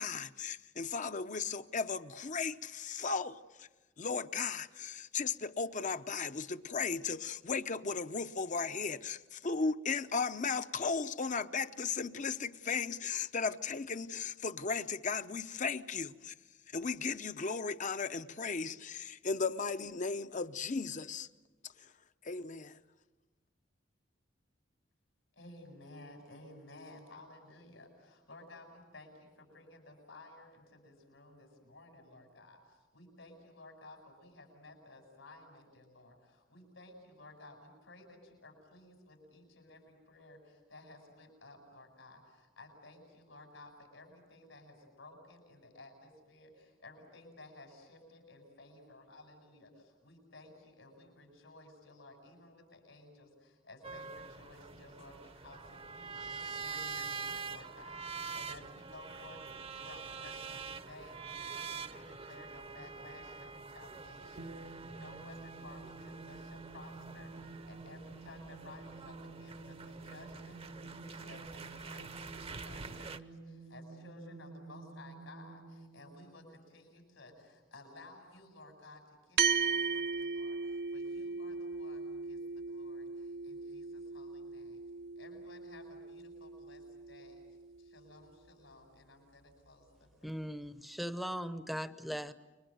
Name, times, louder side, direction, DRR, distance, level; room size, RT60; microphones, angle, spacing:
voice 1, 0.0-3.7 4.0-16.3 16.7-21.3 22.2-22.8, left 5 dB, 40° left, 0.8 m, -36 dB
voice 2, 25.3-59.4 59.7-84.8 85.2-87.4 87.8-90.4, left 2 dB, 90° left, 7.9 m, -55 dB
sound 1, 53.8-73.2, right 5 dB, 30° right, 0.8 m, -45 dB
sound 2, 64.4-77.2, right 3 dB, 80° right, 2.1 m, -50 dB
sound 3, 79.4-88.0, right 5 dB, 60° right, 0.8 m, -37 dB
voice 3, 90.2-92.3, equal, ahead, 0.8 m, -39 dB
29.5 x 24.0 x 7.9 m
head